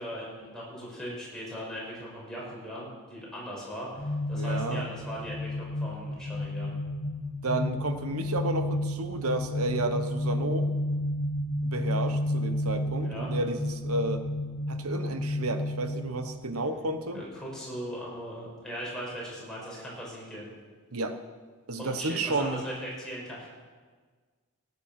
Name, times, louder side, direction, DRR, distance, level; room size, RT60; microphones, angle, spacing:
voice 1, 0.0-6.7 13.0-13.3 17.1-20.5 21.8-23.5, equal, 5° left, -5 dB, 5.0 m, -39 dB
sound 1, 4.0-17.0, left 1 dB, 40° left, 0.8 m, -31 dB
voice 2, 4.3-4.8 7.4-10.7 11.6-14.3 14.7-17.2 20.9-21.2 21.7-22.6, right 2 dB, 80° right, 9 dB, 1.1 m, -31 dB
17.5 x 9.4 x 5.9 m, 1.5 s
head